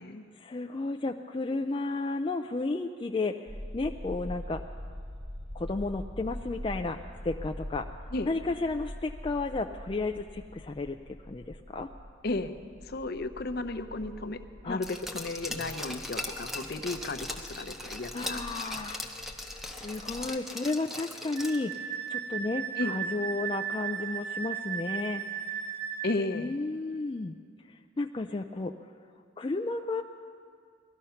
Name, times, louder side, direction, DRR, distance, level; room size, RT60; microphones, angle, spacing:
voice 1, 0.4-3.5 3.7-4.6 5.5-7.9 8.3-11.0 11.3-11.9 14.6-14.8 18.1-19.2 19.7-25.2 26.3-27.4 28.0-28.7 29.4-30.0, left 3 dB, 25° left, 4 dB, 0.4 m, -33 dB
sound 1, 3.5-20.2, equal, 40° right, 2.0 m, -44 dB
voice 2, 12.2-12.5 12.8-18.4 18.7-18.8 22.8-23.0 26.0-26.6, left 2 dB, 50° left, 9 dB, 0.7 m, -34 dB
Glass, 14.8-21.8 22.1-22.2, left 1 dB, ahead, 0.7 m, -39 dB
Wind instrument woodwind instrument, 21.4-26.1, right 8 dB, 75° right, 2.9 m, -35 dB
19.0 x 13.0 x 5.7 m, 2.2 s
head